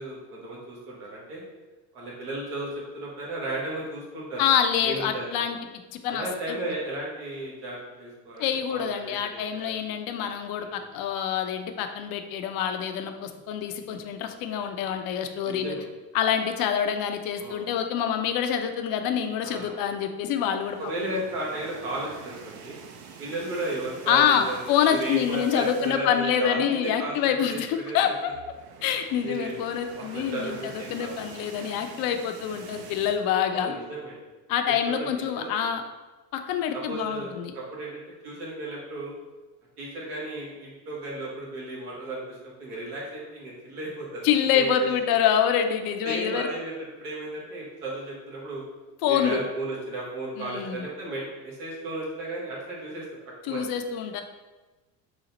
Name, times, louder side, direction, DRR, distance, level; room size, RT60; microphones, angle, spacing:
voice 1, 0.0-1.4 1.9-4.5 4.8-5.3 6.1-9.7 10.6-10.7 15.4-15.9 17.4-17.7 19.4-19.9 20.8-22.8 23.2-28.1 29.2-31.6 33.5-34.2 34.8-35.5 36.7-39.2 39.8-44.3 44.5-44.9 46.0-48.6 49.0-53.0 53.4-53.6, right 1 dB, 85° right, -4 dB, 1.4 m, -35 dB
voice 2, 4.4-5.6 5.9-6.6 8.4-15.7 16.1-20.8 24.1-28.3 28.8-33.7 34.5-35.8 36.3-37.5 44.2-46.5 49.0-49.4 50.4-50.9 53.4-54.2, left 8 dB, 55° left, 7 dB, 0.5 m, -26 dB
sound 1, 20.4-26.2 26.6-26.8 27.0-27.1 28.2-33.2, right 6 dB, 60° right, 0.6 m, -46 dB
4.0 x 2.0 x 4.1 m, 1.2 s
hypercardioid pair, 85°, 43 cm